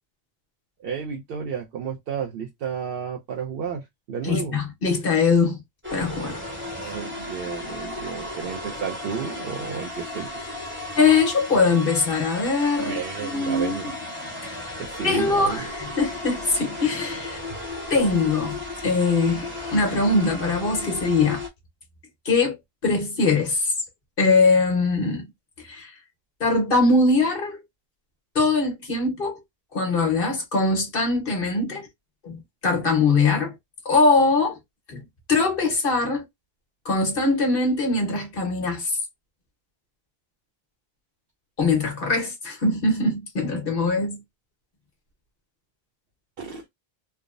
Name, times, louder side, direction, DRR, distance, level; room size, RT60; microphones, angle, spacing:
voice 1, 0.8-4.6 6.8-10.3 12.8-13.9 14.8-15.6 46.4-46.6, right 6 dB, 70° right, 0.8 m, -32 dB
voice 2, 4.2-5.6 5.9-6.4 6.8-7.0 10.9-13.8 14.4-14.6 15.0-17.4 17.9-21.4 22.2-22.6 22.8-23.7 24.2-25.3 25.6-25.9 26.4-27.6 28.3-29.4 29.7-31.9 32.2-33.5 33.8-34.6 34.9-35.0 35.3-36.2 36.8-39.0 41.6-44.2, left 3 dB, 60° left, 1.3 m, -22 dB
sound 1, 5.8-21.5, left 2 dB, 10° right, 0.9 m, -35 dB
3.4 x 2.0 x 2.4 m
omnidirectional pair, 1.0 m